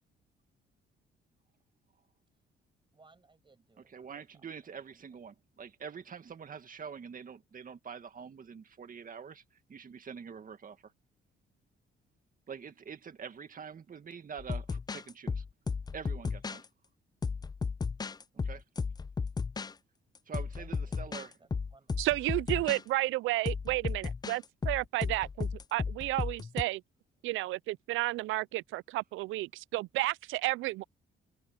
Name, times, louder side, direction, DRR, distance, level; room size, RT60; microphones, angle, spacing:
voice 1, 2.9-5.2 12.6-12.7 18.3-18.6 19.2-19.3 20.6-21.0 21.4-22.1, right 3 dB, 25° right, 7.5 m, -64 dB
voice 2, 3.9-10.9 12.5-15.4 15.9-16.7 18.4-18.6 20.3-21.3, right 6 dB, 45° right, 2.1 m, -45 dB
sound 1, 14.4-16.6 17.2-19.7 20.3-21.3 21.5-22.8 23.5-26.6, left 5 dB, 20° left, 0.4 m, -34 dB
voice 3, 22.0-26.8 27.2-30.8, right 18 dB, 85° right, 0.4 m, -32 dB
open air
cardioid pair, 90°, 20 cm